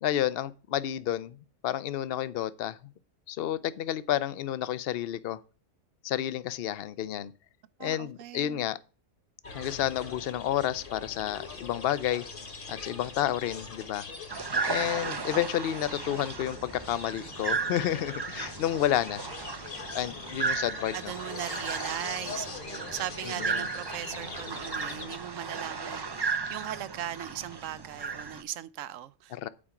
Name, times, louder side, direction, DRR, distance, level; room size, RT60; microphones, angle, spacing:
voice 1, 0.0-1.4 1.6-2.8 3.3-5.4 6.0-7.3 7.8-8.8 9.5-12.2 12.7-14.1 14.7-19.2 19.9-21.1 23.2-23.7 29.3-29.5, left 12 dB, 60° left, 0.7 m, -30 dB
voice 2, 7.8-8.7 20.9-29.5, right 12 dB, 80° right, 1.0 m, -38 dB
sound 1, 9.4-25.2, left 4 dB, 45° left, 1.4 m, -42 dB
sound 2, 14.3-28.4, right 4 dB, 35° right, 0.4 m, -35 dB
8.8 x 4.9 x 7.0 m
omnidirectional pair, 1.3 m